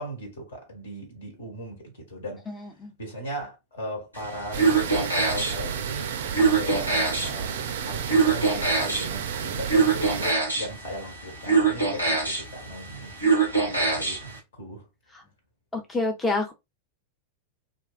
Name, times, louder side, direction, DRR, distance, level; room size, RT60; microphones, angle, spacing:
voice 1, 0.0-2.5 3.0-6.1 6.4-14.9, equal, 65° left, 1.2 m, -37 dB
voice 2, 2.5-2.9 15.1-15.2 15.7-16.5, left 2 dB, 15° left, 0.4 m, -28 dB
sound 1, 4.1-14.4, right 4 dB, 85° left, 1.0 m, -25 dB
sound 2, 4.5-10.3, right 8 dB, 60° right, 0.3 m, -32 dB
2.6 x 2.3 x 2.4 m
figure-of-eight pair, 90°, 0 cm